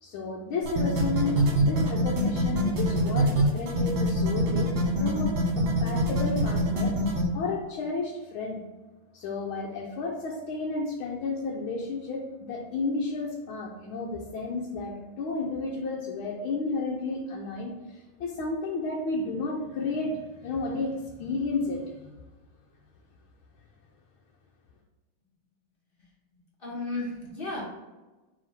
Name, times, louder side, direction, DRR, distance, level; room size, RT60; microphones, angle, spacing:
voice 1, 0.0-7.0 7.3-8.6 9.1-22.2, left 3 dB, 80° left, -2 dB, 1.6 m, -32 dB
sound 1, 0.7-7.2, right 1 dB, 65° right, 1.9 m, -25 dB
voice 2, 26.6-27.6, left 2 dB, 30° left, -4 dB, 1.5 m, -34 dB
4.9 x 3.7 x 5.6 m, 1.1 s
omnidirectional pair, 2.3 m